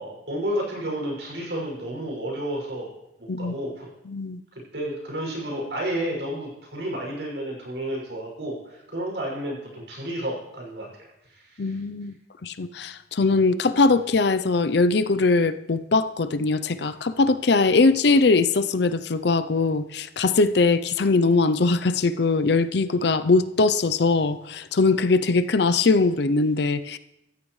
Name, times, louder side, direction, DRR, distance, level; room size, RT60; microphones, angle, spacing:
voice 1, 0.0-2.9 3.4-3.9 4.7-10.9 11.2-11.8, right 1 dB, 65° right, -2 dB, 6.4 m, -31 dB
voice 2, 4.1-4.4 11.6-12.1 12.4-27.0, left 3 dB, 60° left, 12 dB, 0.6 m, -21 dB
16.5 x 14.5 x 3.2 m, 0.89 s
head